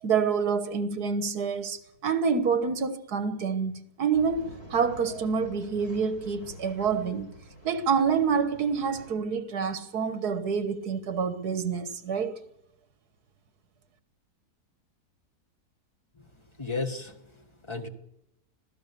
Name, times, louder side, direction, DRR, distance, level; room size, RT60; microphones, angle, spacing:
voice 1, 0.0-7.3 7.6-12.4, right 6 dB, 75° right, 1.8 m, -27 dB
Male speech man speaking / Chatter / Rattle, 4.1-9.1, equal, 40° left, 6.4 m, -48 dB
voice 2, 16.1-17.9, left 3 dB, 20° left, 1.4 m, -35 dB
26.0 x 16.5 x 6.8 m
omnidirectional pair, 1.7 m